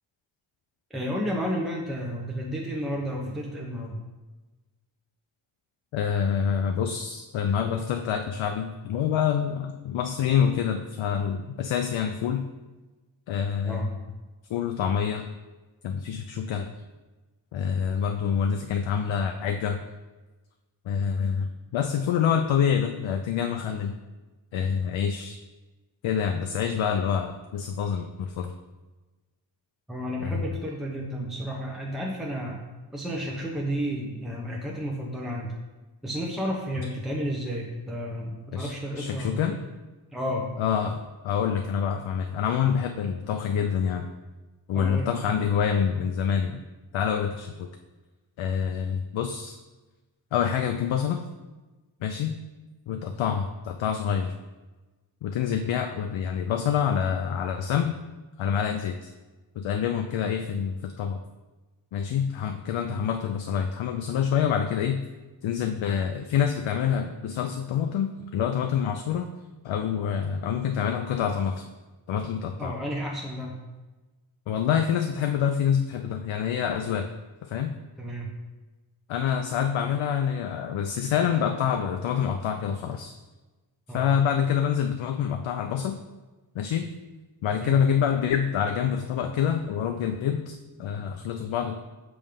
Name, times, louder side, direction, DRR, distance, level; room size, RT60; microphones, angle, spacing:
voice 1, 0.9-4.0 13.6-13.9 29.9-32.6 32.9-35.5 36.0-39.6 40.1-40.5 44.7-45.1 62.8-63.1 72.6-73.6 78.0-78.3 83.9-84.1 87.5-87.8, equal, ahead, -2 dB, 0.9 m, -32 dB
voice 2, 5.9-12.5 13.3-13.8 14.5-15.3 15.8-16.7 17.5-19.8 20.9-23.9 24.5-25.4 26.0-28.5 30.2-30.3 38.5-39.6 40.6-44.1 44.7-46.6 46.9-47.7 48.4-49.6 50.3-51.2 52.0-52.4 52.9-54.3 55.2-57.9 58.4-59.1 59.6-61.2 61.9-65.0 65.4-69.3 69.6-71.6 72.1-72.8 74.5-77.1 77.4-77.7 79.1-83.2 83.9-86.0 86.5-86.9 87.4-91.8, left 8 dB, 65° left, 5 dB, 0.5 m, -26 dB
5.3 x 3.5 x 5.2 m, 1.2 s
cardioid pair, 65°, 50 cm